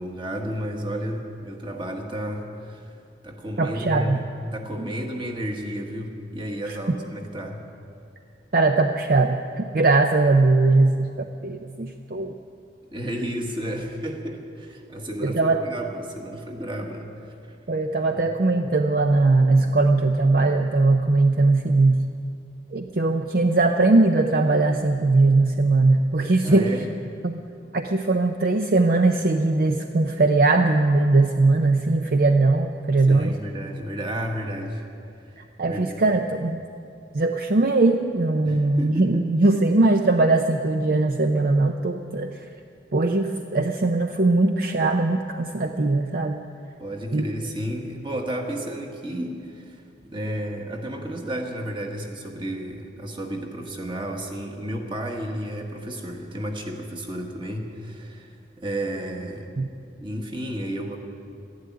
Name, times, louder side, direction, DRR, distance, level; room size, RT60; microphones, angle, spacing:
voice 1, 0.0-2.9 3.2-7.6 12.9-17.3 18.1-18.2 26.4-26.9 33.1-34.8 35.3-36.0 38.4-39.3 46.8-59.5 60.0-61.0, equal, 25° right, 2 dB, 1.5 m, -32 dB
voice 2, 3.6-4.2 6.7-6.8 8.5-12.3 15.2-15.6 17.7-22.0 22.7-26.7 27.2-27.4 27.7-33.4 35.4-36.6 37.1-42.4 42.9-46.4 47.1-47.3 59.6-59.7, right 2 dB, 50° right, 5 dB, 0.5 m, -20 dB
13.0 x 11.5 x 9.6 m, 2.5 s
head